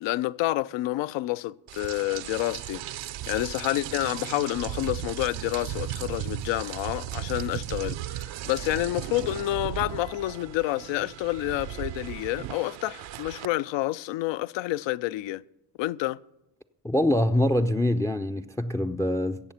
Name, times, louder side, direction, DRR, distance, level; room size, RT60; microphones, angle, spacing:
voice 1, 0.0-2.8 3.3-15.4 15.8-16.2, left 16 dB, 65° left, 0.5 m, -29 dB
Rain, 1.7-13.5, right 13 dB, 60° right, 0.7 m, -36 dB
voice 2, 16.8-19.5, left 1 dB, 5° left, 0.4 m, -24 dB
16.5 x 7.2 x 5.8 m
hypercardioid pair, 55°, 50 cm